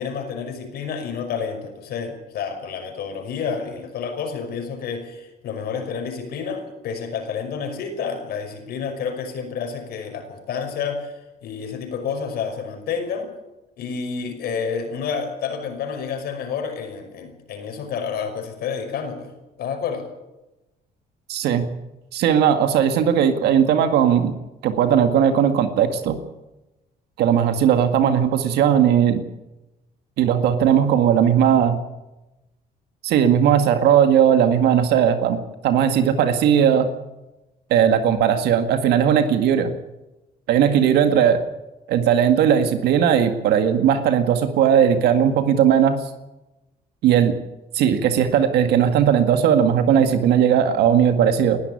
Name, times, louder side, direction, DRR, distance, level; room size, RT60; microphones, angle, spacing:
voice 1, 0.0-13.3 13.8-19.3 19.6-20.1, left 6 dB, 70° left, 6 dB, 5.6 m, -29 dB
voice 2, 21.3-21.7 22.1-24.3 24.6-26.2 27.2-29.2 30.2-31.8 33.0-36.9 37.7-39.7 40.5-41.4 41.9-46.0 47.0-47.4 47.7-51.6, right 8 dB, 80° right, 8 dB, 2.0 m, -18 dB
20.5 x 13.5 x 9.7 m, 0.98 s
cardioid pair, 110°, 17 cm